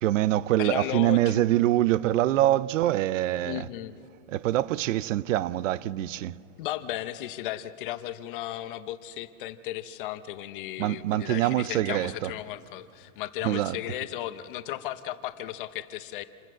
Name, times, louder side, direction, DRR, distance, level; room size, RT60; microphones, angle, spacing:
voice 1, 0.0-3.7 4.3-6.4 10.8-12.3 13.4-13.8, right 14 dB, 80° right, 0.7 m, -25 dB
voice 2, 0.6-1.4 3.5-4.0 6.6-16.2, left 14 dB, 45° left, 0.7 m, -35 dB
27.5 x 13.5 x 7.8 m
supercardioid pair, 175°, 38 cm